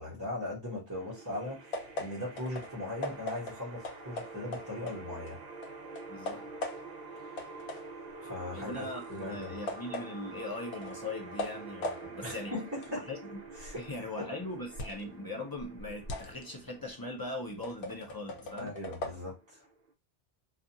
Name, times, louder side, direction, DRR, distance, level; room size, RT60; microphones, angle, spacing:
voice 1, 0.0-5.4 7.2-7.5 8.2-9.6 12.2-13.1 13.6-14.3 18.6-19.7, left 1 dB, 20° right, 1.0 m, -39 dB
sound 1, 0.9-19.9, right 3 dB, 50° right, 0.6 m, -47 dB
sound 2, 1.7-5.4 5.6-7.1 7.4-15.1 15.5-19.2, left 2 dB, 90° left, 0.9 m, -41 dB
voice 2, 6.1-6.4 8.5-12.5 12.9-13.4 13.7-18.8, left 2 dB, 25° left, 0.6 m, -40 dB
2.5 x 2.4 x 2.7 m
omnidirectional pair, 1.1 m